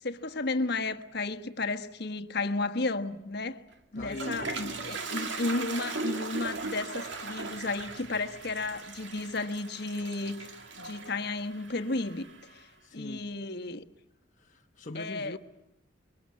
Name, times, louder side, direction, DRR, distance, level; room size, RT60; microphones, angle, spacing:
voice 1, 0.0-3.6 3.9-10.5 10.8-12.7 12.9-13.9 14.9-15.4, left 3 dB, 55° left, 1.3 m, -33 dB
Toilet flush, 3.7-12.6, right 3 dB, 70° right, 2.0 m, -38 dB
voice 2, 4.0-5.0 12.8-13.2 14.4-15.4, left 2 dB, 40° left, 1.1 m, -42 dB
26.5 x 23.5 x 9.6 m
head